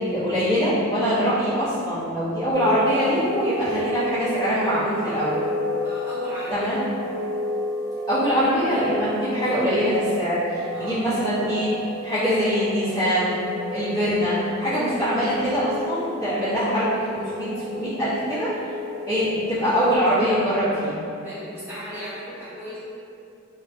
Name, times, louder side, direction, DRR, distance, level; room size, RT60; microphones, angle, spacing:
voice 1, 0.0-5.4 6.5-6.8 8.1-11.7 12.0-13.4 13.7-17.5 17.7-18.5 19.0-21.0, equal, 15° left, -15 dB, 0.7 m, -23 dB
sound 1, 2.5-20.0, equal, 70° right, 0.4 m, -31 dB
voice 2, 5.8-7.0 10.7-11.0 21.2-22.8, equal, 10° right, -14 dB, 0.9 m, -36 dB
2.6 x 2.1 x 2.5 m, 2.6 s
head